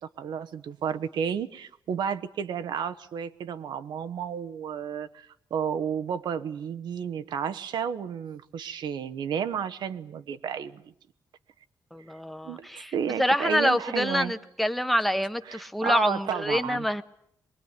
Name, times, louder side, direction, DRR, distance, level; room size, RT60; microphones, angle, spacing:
voice 1, 0.2-10.8 12.4-14.3 15.5-16.8, right 7 dB, 85° right, 1.2 m, -32 dB
voice 2, 11.9-12.9 13.2-17.0, equal, ahead, 1.0 m, -26 dB
23.5 x 21.5 x 9.7 m
wide cardioid pair, 145°, 7 cm